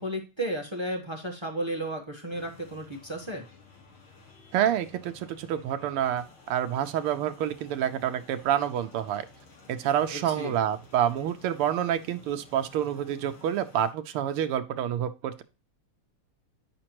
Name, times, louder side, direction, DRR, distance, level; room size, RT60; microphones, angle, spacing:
voice 1, 0.0-3.4 10.1-10.6, right 1 dB, 25° right, 2 dB, 0.6 m, -33 dB
sound 1, 2.3-13.9, left 4 dB, 75° left, 2.6 m, -54 dB
voice 2, 4.5-9.3 9.7-15.4, right 10 dB, 85° right, 8 dB, 1.6 m, -28 dB
9.8 x 5.2 x 2.9 m, 0.31 s
omnidirectional pair, 2.4 m